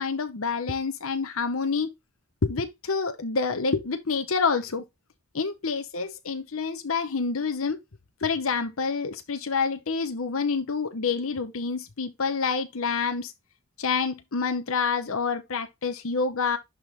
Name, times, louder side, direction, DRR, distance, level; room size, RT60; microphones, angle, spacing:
voice 1, 0.0-1.9 2.4-4.8 5.3-7.8 8.2-13.3 13.8-16.6, left 5 dB, 70° left, 0.8 m, -27 dB
11.0 x 3.8 x 2.7 m
head